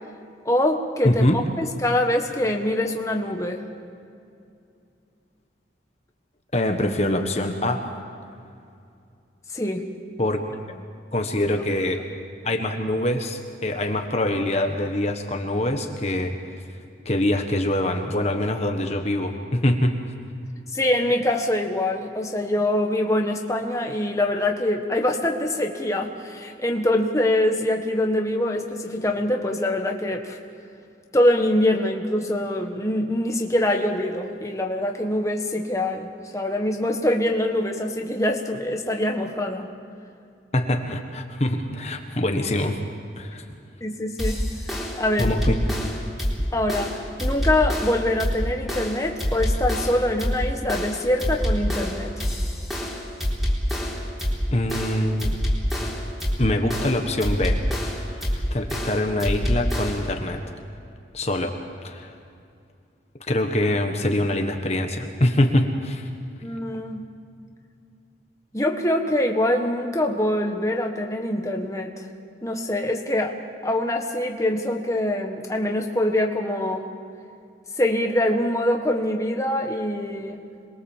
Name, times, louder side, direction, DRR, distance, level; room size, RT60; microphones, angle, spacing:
voice 1, 0.4-3.6 9.5-9.9 11.5-11.6 20.7-30.4 31.1-36.1 36.3-39.7 43.8-44.4 44.9-45.3 46.5-46.9 47.2-52.1 66.4-67.0 68.5-71.9 72.4-73.4 73.6-76.9 77.8-80.4, left 1 dB, 15° left, 2 dB, 1.5 m, -24 dB
voice 2, 1.0-1.4 6.5-7.9 10.2-10.4 11.1-12.0 12.4-16.4 17.0-19.9 40.5-42.8 43.2-43.4 45.2-45.9 54.5-55.3 56.4-57.6 58.1-60.4 61.1-61.6 61.8-62.1 63.2-66.1, left 1 dB, 35° left, 4 dB, 1.4 m, -24 dB
sound 1, 44.2-60.2, equal, ahead, 3.8 m, -26 dB
27.0 x 22.0 x 7.4 m, 2.5 s
head